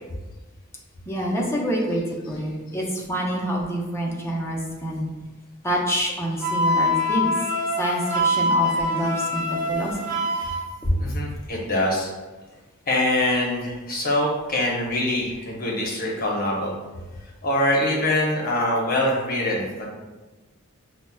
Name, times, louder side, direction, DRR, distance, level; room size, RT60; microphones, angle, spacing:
voice 1, 1.1-5.1 5.6-7.3 7.8-10.2 10.8-11.0, equal, 15° left, -2 dB, 0.5 m, -27 dB
Wind instrument woodwind instrument, 6.4-10.6, left 1 dB, 5° right, 0.9 m, -24 dB
voice 2, 11.0-12.1 12.9-16.7 17.4-19.9, left 1 dB, 45° left, -3 dB, 0.8 m, -24 dB
5.6 x 2.1 x 2.2 m, 1.2 s
head